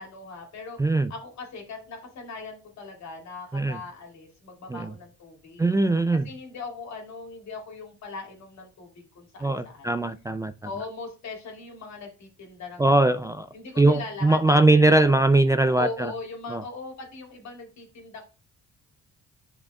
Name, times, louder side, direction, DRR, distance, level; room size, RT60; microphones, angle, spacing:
voice 1, 0.0-5.6 6.1-8.9 9.1-10.0 10.6-13.1 13.5-15.0 15.7-18.2, left 3 dB, 65° left, 2.4 m, -40 dB
voice 2, 0.8-1.1 3.5-3.8 4.7-4.9 5.6-6.3 9.4-10.5 12.8-13.5 13.8-16.1 16.5-16.6, right 2 dB, 10° right, 0.3 m, -21 dB
9.6 x 5.1 x 2.3 m
cardioid pair, 90°, 30 cm